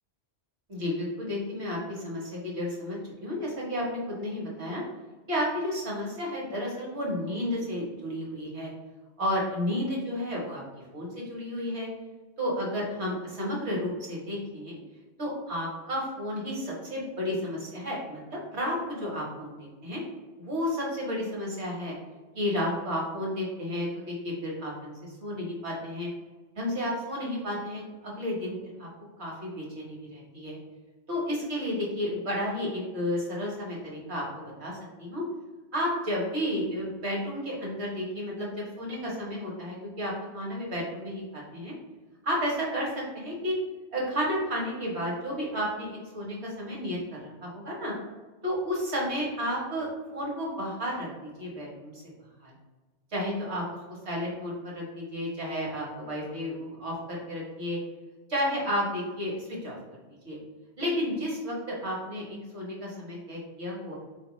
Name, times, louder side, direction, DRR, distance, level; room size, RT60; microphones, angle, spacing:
voice 1, 0.7-4.8 5.3-8.7 9.2-10.6 10.9-11.9 12.4-14.8 15.2-20.0 20.4-21.9 22.3-24.9 25.2-26.1 26.6-28.9 29.2-30.6 31.1-34.7 35.0-35.2 35.7-41.7 42.2-42.9 43.1-43.5 43.9-47.9 48.4-52.0 52.4-52.5 53.1-53.6 54.0-57.8 58.3-59.8 60.2-60.4 60.8-63.9, equal, 70° right, -3 dB, 1.5 m, -32 dB
4.3 x 2.9 x 3.0 m, 1.3 s
omnidirectional pair, 1.2 m